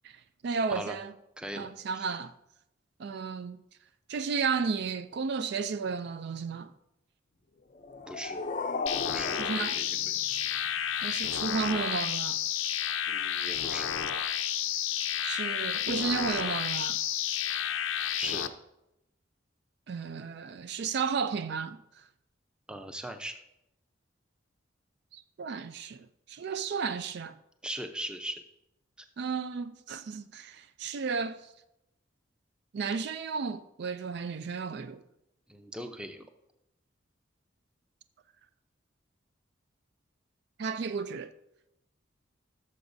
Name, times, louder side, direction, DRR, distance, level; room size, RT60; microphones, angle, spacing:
voice 1, 0.0-1.1 1.6-2.3 3.0-3.6 4.1-6.7 9.4-9.8 11.0-12.4 15.2-17.0 19.9-21.8 25.1-27.4 29.2-31.5 32.7-35.0 40.6-41.3, right 5 dB, 55° right, 0.3 m, -33 dB
voice 2, 1.4-1.7 1.9-2.1 8.1-8.4 9.1-10.2 13.1-13.9 18.2-18.5 22.7-23.4 27.6-28.4 29.0-29.1 35.5-36.3, right 1 dB, 5° right, 0.6 m, -39 dB
sound 1, 7.7-10.7, left 3 dB, 40° left, 0.5 m, -36 dB
sound 2, 8.9-18.5, left 10 dB, 85° left, 0.6 m, -31 dB
16.5 x 7.0 x 2.6 m
head